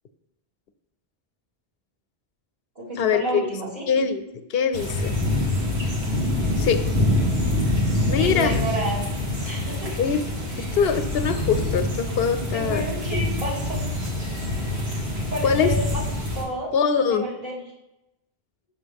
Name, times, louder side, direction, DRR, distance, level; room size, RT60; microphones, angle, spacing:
voice 1, 2.8-3.8 8.2-9.0 9.4-9.9 10.6-10.7 12.5-13.9 15.3-15.9 16.3-16.7 17.0-17.6, right 1 dB, 45° right, -7 dB, 2.5 m, -30 dB
voice 2, 3.9-5.2 6.6-6.9 8.1-8.6 10.0-10.3 10.6-12.8 15.4-15.7 16.7-17.3, left 6 dB, 75° left, 9 dB, 0.8 m, -23 dB
sound 1, 4.7-16.4, left 1 dB, 85° right, 1.8 m, -25 dB
6.9 x 6.2 x 3.4 m, 0.90 s
omnidirectional pair, 1.0 m